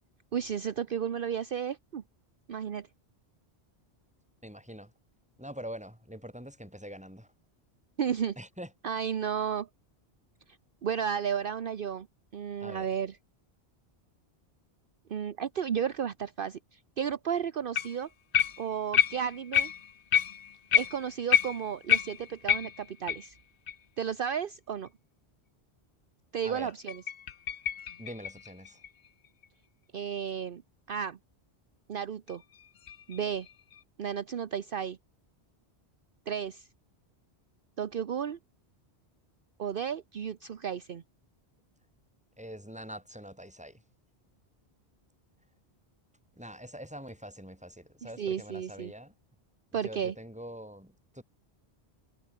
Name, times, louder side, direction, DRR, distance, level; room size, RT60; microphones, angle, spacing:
voice 1, 0.3-2.0 2.5-2.9 8.0-8.4 8.8-9.7 10.8-12.1 12.3-13.2 15.1-18.1 18.6-19.7 20.7-23.4 24.0-24.9 26.3-27.0 29.9-30.6 30.9-31.2 31.9-32.4 33.1-33.5 34.0-35.0 36.3-36.7 37.8-38.4 39.6-41.0 48.0-48.9 49.7-50.1, right 8 dB, 55° right, 1.0 m, -33 dB
voice 2, 4.4-4.9 5.4-7.3 8.4-8.7 12.6-12.9 26.4-26.7 28.0-28.8 42.4-43.8 46.4-49.1 49.8-51.2, equal, 5° right, 4.2 m, -44 dB
sound 1, 17.7-18.0 18.3-23.3 23.7-23.8 24.3-24.4 24.9-25.0 26.7-29.4 32.3-33.8, left 9 dB, 80° left, 1.2 m, -29 dB
omnidirectional pair, 1.1 m